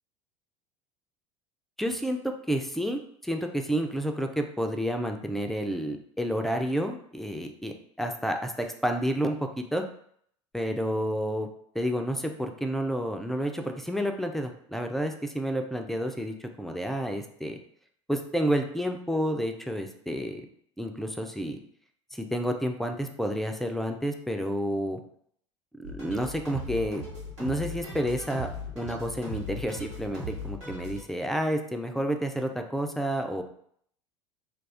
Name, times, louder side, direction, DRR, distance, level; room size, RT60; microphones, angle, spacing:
voice 1, 1.8-9.8 10.5-11.5 11.7-17.6 18.1-20.5 20.8-21.6 22.1-25.0 25.8-27.0 27.4-28.5 28.8-33.4, equal, ahead, 4 dB, 0.3 m, -30 dB
sound 1, 25.8-31.0, left 1 dB, 85° right, 1.1 m, -38 dB
2.3 x 2.3 x 3.3 m, 0.65 s
figure-of-eight pair, 70°, 15 cm